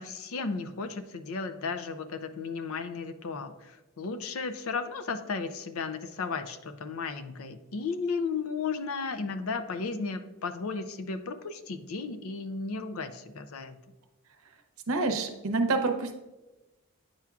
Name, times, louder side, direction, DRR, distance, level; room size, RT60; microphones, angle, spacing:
voice 1, 0.0-13.8, left 4 dB, 70° left, 10 dB, 0.5 m, -34 dB
voice 2, 14.9-16.1, right 3 dB, 70° right, 6 dB, 0.7 m, -27 dB
8.9 x 5.8 x 2.4 m, 1.1 s
head